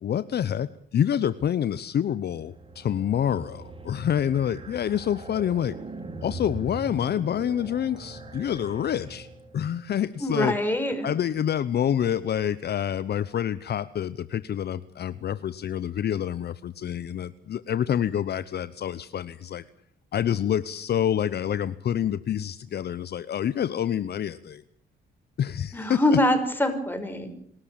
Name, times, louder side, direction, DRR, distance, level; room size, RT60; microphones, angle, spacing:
voice 1, 0.0-5.8 6.2-9.3 9.5-10.6 11.0-19.6 20.1-24.6 25.4-26.2, left 9 dB, 55° left, 15 dB, 0.8 m, -27 dB
sound 1, 2.2-9.7, right 2 dB, 25° right, 3.7 m, -41 dB
voice 2, 10.2-11.1 25.7-27.3, left 1 dB, 10° left, 6 dB, 5.8 m, -24 dB
26.5 x 13.0 x 8.7 m, 0.64 s
cardioid pair, 90°, 20 cm